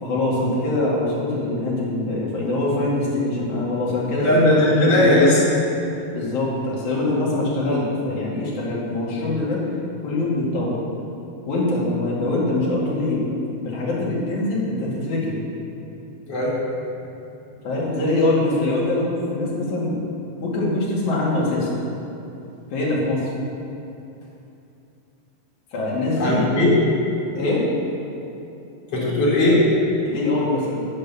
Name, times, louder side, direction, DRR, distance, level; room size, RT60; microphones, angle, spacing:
voice 1, 0.0-5.2 6.1-9.6 10.0-10.8 11.5-13.2 13.6-15.4 17.6-20.0 20.4-21.7 22.7-23.3 25.7-26.5 27.4-27.6 30.0-30.9, left 2 dB, 75° left, -6 dB, 3.8 m, -23 dB
voice 2, 4.2-5.4 16.3-16.6 26.2-26.7 28.9-29.6, left 1 dB, 55° left, -7 dB, 4.0 m, -17 dB
8.7 x 8.4 x 6.9 m, 2.8 s
omnidirectional pair, 3.5 m